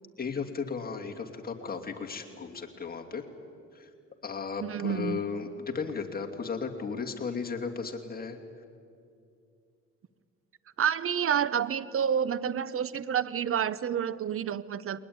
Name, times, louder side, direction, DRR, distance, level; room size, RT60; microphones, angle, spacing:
voice 1, 0.2-3.3 3.7-3.9 4.2-8.4, left 5 dB, 30° left, 2 dB, 2.6 m, -35 dB
voice 2, 4.6-5.2 10.8-15.0, right 8 dB, 45° right, 18 dB, 0.9 m, -29 dB
21.5 x 20.0 x 9.6 m, 2.5 s
cardioid pair, 90°, 30 cm